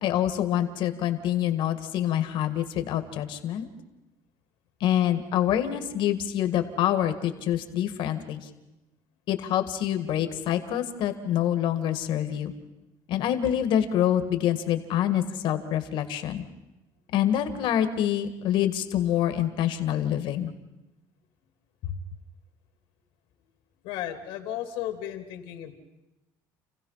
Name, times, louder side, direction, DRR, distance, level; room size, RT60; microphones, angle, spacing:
voice 1, 0.0-3.7 4.8-8.5 9.3-12.5 13.1-16.4 17.1-20.5, left 11 dB, 65° left, 9 dB, 1.9 m, -26 dB
voice 2, 23.8-25.7, left 11 dB, 90° left, 5 dB, 2.6 m, -34 dB
29.0 x 16.0 x 5.7 m, 0.98 s
cardioid pair, 130°, 9 cm